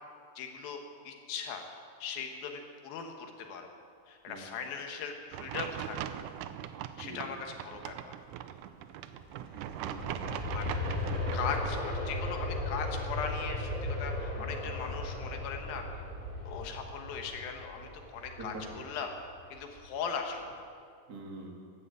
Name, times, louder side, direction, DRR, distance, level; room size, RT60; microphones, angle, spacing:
voice 1, 0.4-1.7 2.0-3.6 4.1-6.0 7.0-7.4 7.6-8.1 10.5-10.7 11.3-15.8 16.4-19.1 19.5-20.6, left 6 dB, 85° left, 4 dB, 3.2 m, -39 dB
sound 1, 5.3-11.9, right 11 dB, 80° right, 1.9 m, -40 dB
voice 2, 7.0-7.3 9.8-10.3 14.4-14.9 18.4-18.8 21.1-21.5, right 2 dB, 35° right, 0 dB, 1.9 m, -45 dB
Aircraft, 9.1-20.0 20.4-20.5, left 2 dB, 15° left, 2.3 m, -37 dB
12.5 x 11.5 x 8.1 m, 2.2 s
omnidirectional pair, 4.1 m